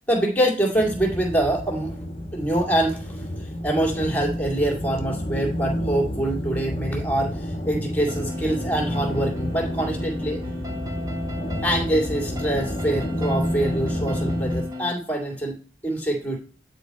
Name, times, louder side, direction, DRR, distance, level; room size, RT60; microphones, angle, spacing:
voice 1, 0.1-2.0 2.3-10.4 11.6-16.4, right 1 dB, 10° left, 0 dB, 2.3 m, -25 dB
sound 1, 0.7-14.6, equal, 30° left, 1.1 m, -30 dB
sound 2, 8.1-14.9, left 2 dB, 20° right, 0.7 m, -36 dB
9.8 x 4.6 x 4.2 m, 0.38 s
head